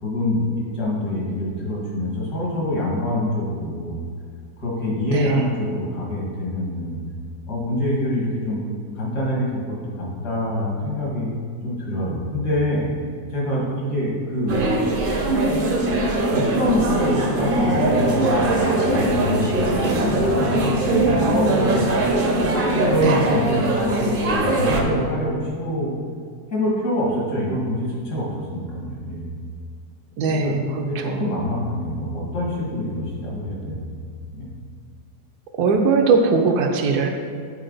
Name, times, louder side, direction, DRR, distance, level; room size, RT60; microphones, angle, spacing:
voice 1, 0.0-4.0 4.6-7.0 7.5-8.7 8.9-11.3 11.6-12.9 13.3-14.6 16.3-21.9 22.8-25.9 26.5-29.3 30.3-30.6 30.8-33.8 34.3-34.5, left 1 dB, 75° left, -4 dB, 2.4 m, -25 dB
voice 2, 5.1-5.4 23.0-23.2 30.2-31.2 35.6-37.1, right 4 dB, 70° right, 4 dB, 1.1 m, -20 dB
sound 1, 14.5-24.8, right 2 dB, 45° right, 0.7 m, -21 dB
8.8 x 4.5 x 3.9 m, 2.1 s
omnidirectional pair, 1.8 m